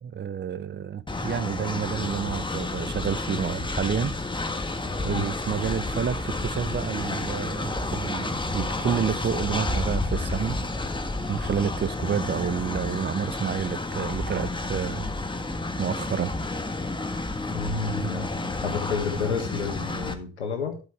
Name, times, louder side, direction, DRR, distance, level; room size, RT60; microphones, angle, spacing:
voice 1, 0.0-4.1 5.0-10.6 11.3-15.1 15.8-16.3 18.0-18.1, right 7 dB, 30° right, 0.9 m, -29 dB
Train, 1.1-20.1, left 2 dB, 15° left, 1.6 m, -30 dB
voice 2, 17.5-20.8, left 5 dB, 85° left, 1.8 m, -31 dB
12.0 x 8.1 x 3.4 m
figure-of-eight pair, 50°, 33 cm